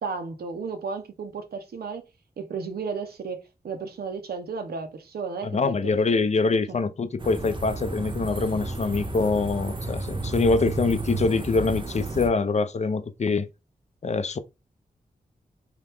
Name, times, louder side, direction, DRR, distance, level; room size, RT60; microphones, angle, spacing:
voice 1, 0.0-2.0 2.4-5.9 6.7-6.8, right 5 dB, 75° right, 0.7 m, -34 dB
voice 2, 5.5-13.5 14.0-14.4, left 4 dB, 45° left, 0.5 m, -24 dB
sound 1, 7.2-12.3, right 3 dB, 30° right, 0.7 m, -32 dB
2.9 x 2.2 x 3.4 m
cardioid pair, 45°, 16 cm